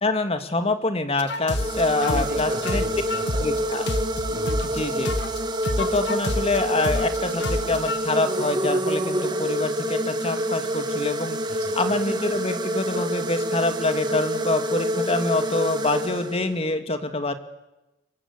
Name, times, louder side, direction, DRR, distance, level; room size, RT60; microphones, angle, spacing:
voice 1, 0.0-2.8 3.4-3.9 4.7-5.1 5.8-11.4 11.7-17.3, left 2 dB, 30° left, 8 dB, 2.0 m, -26 dB
sound 1, 1.2-4.8 5.0-8.0, left 1 dB, 60° left, 1.6 m, -28 dB
sound 2, 1.5-16.7, right 1 dB, 25° right, 1.9 m, -27 dB
voice 2, 2.0-3.4 4.3-4.6 11.6-11.7, right 1 dB, 50° right, 4 dB, 5.0 m, -36 dB
29.0 x 23.0 x 8.3 m, 0.98 s
head